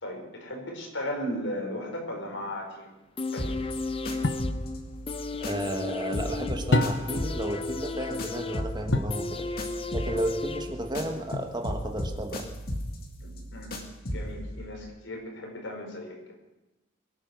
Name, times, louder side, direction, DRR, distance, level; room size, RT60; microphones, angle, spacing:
voice 1, 0.0-2.9 3.3-3.5 13.2-13.7 14.1-16.1, left 1 dB, 90° left, 1 dB, 4.8 m, -36 dB
sound 1, 3.2-11.1 11.5-11.6, left 3 dB, 30° left, 0.7 m, -35 dB
sound 2, 3.4-5.9 6.1-11.4 11.6-14.4, equal, 50° left, 2.1 m, -36 dB
sound 3, 4.2-4.6 6.7-7.3 8.9-9.3 11.3-11.8, left 2 dB, 70° left, 1.0 m, -27 dB
voice 2, 5.4-9.5 9.9-12.5, right 1 dB, 25° right, 4 dB, 1.5 m, -33 dB
22.5 x 9.1 x 6.2 m, 1.0 s
head